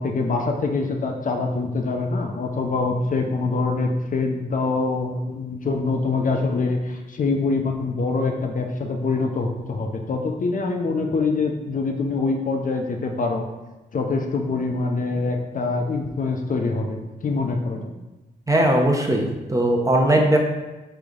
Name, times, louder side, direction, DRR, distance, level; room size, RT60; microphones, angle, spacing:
voice 1, 0.0-13.5 13.9-17.9, left 3 dB, 50° left, 3 dB, 0.6 m, -24 dB
voice 2, 18.5-20.4, right 1 dB, 20° right, 1 dB, 0.8 m, -19 dB
4.0 x 3.3 x 3.7 m, 1.1 s
cardioid pair, 55°, 17 cm